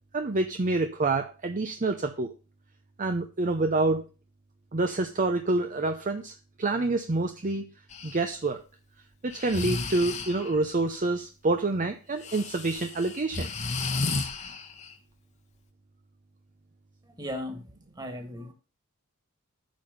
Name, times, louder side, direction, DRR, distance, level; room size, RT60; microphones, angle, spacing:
voice 1, 0.1-2.3 3.0-4.1 4.7-6.3 6.6-7.7 8.0-8.6 9.2-13.5, right 2 dB, 35° right, 0.7 m, -27 dB
Breathing, 7.9-8.2 9.3-10.6 12.2-14.9, left 3 dB, 35° left, 1.2 m, -33 dB
voice 2, 17.0-18.5, left 1 dB, 20° right, 2.1 m, -37 dB
9.0 x 5.5 x 6.7 m
head